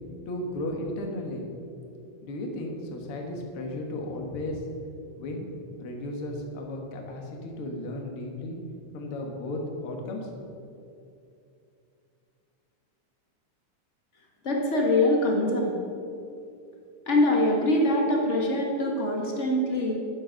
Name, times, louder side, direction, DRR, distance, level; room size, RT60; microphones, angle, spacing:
voice 1, 0.3-1.5 2.2-4.6 5.2-5.4 5.8-8.6 8.9-10.3, left 1 dB, 55° left, 1 dB, 2.1 m, -34 dB
voice 2, 14.4-15.8 17.1-19.9, left 1 dB, 40° left, -1 dB, 1.1 m, -23 dB
11.0 x 7.2 x 6.4 m, 2.6 s
omnidirectional pair, 3.4 m